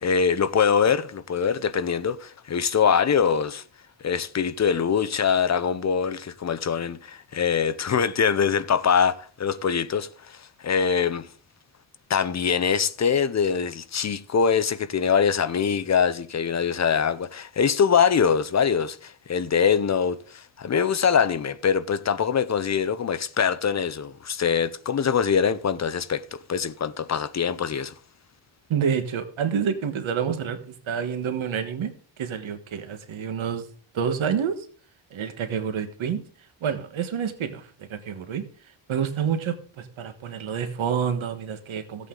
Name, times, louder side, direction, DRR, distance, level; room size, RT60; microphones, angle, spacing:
voice 1, 0.0-3.6 4.0-11.3 12.1-27.9, left 7 dB, 35° left, 0.6 m, -23 dB
voice 2, 28.7-31.9 32.2-33.7 33.9-34.6 35.1-36.2 36.6-38.4 38.9-42.1, right 7 dB, 70° right, 1.4 m, -28 dB
15.0 x 8.3 x 3.8 m
wide cardioid pair, 145°, 49 cm